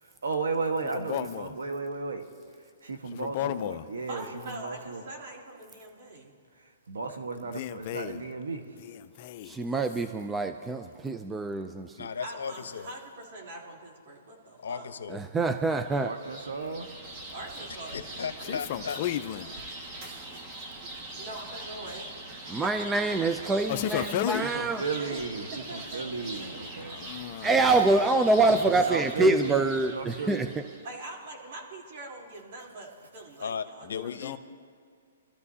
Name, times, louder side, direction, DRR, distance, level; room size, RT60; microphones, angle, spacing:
voice 1, 0.0-2.2 2.8-5.0 6.9-8.8 16.0-17.0 24.0-24.1 24.4-27.0 28.3-29.5 29.9-30.4, right 4 dB, 90° right, 1.4 m, -34 dB
voice 2, 0.9-1.5 3.1-3.9 7.5-8.2 8.8-9.6 18.4-19.5 23.7-24.4 26.9-27.6 33.8-34.4, left 12 dB, 40° left, 0.6 m, -33 dB
voice 3, 4.1-6.4 12.2-14.9 17.3-18.0 18.4-19.0 21.2-22.1 22.4-22.6 24.7-25.2 25.7-27.1 27.4-28.0 30.8-33.9 34.2-34.4, right 2 dB, 55° right, 3.7 m, -44 dB
voice 4, 9.4-12.1 15.1-16.1 22.5-24.8 27.4-30.5, right 3 dB, 10° right, 0.4 m, -25 dB
voice 5, 12.0-12.9 14.6-15.2 17.9-19.0 33.4-33.6 33.9-34.4, left 6 dB, 80° left, 0.9 m, -35 dB
sound 1, 15.8-30.9, right 2 dB, 30° right, 1.8 m, -42 dB
25.0 x 13.5 x 2.8 m
hypercardioid pair, 145°, 0 cm